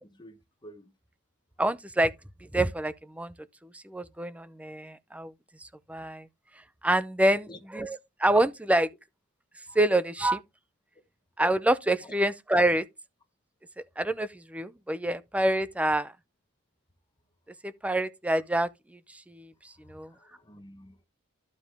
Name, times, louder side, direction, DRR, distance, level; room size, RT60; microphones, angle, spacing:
voice 1, 0.0-0.9 7.3-7.6 9.7-9.8 12.0-12.1 19.8-21.0, equal, 20° left, 1.2 m, -50 dB
voice 2, 1.6-2.1 2.5-3.3 3.7-5.3 5.9-6.2 6.8-8.9 9.8-10.4 11.4-12.8 14.0-16.1 17.8-18.7 19.3-19.5 19.9-20.1, right 1 dB, 5° right, 0.5 m, -26 dB
12.0 x 5.0 x 3.4 m
head